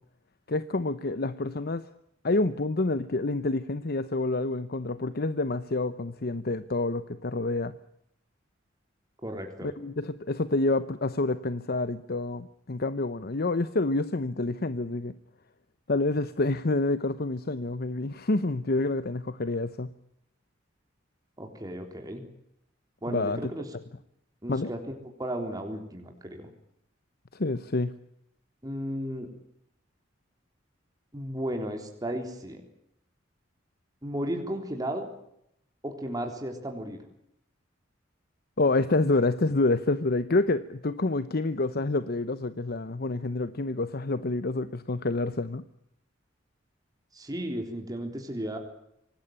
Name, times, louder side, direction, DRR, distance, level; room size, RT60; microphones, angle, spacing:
voice 1, 0.5-1.9 2.2-7.8 9.6-15.1 15.9-19.9 23.1-23.5 24.5-24.7 27.3-27.9 38.6-45.6, left 2 dB, 55° left, 13 dB, 0.9 m, -28 dB
voice 2, 9.2-9.7 21.4-22.2 23.0-23.7 24.4-24.8 25.2-26.5 28.6-29.3 31.1-32.6 34.0-35.1 35.8-37.0 47.1-48.6, right 1 dB, 20° right, 3 dB, 3.8 m, -34 dB
25.5 x 19.0 x 8.9 m, 0.79 s
head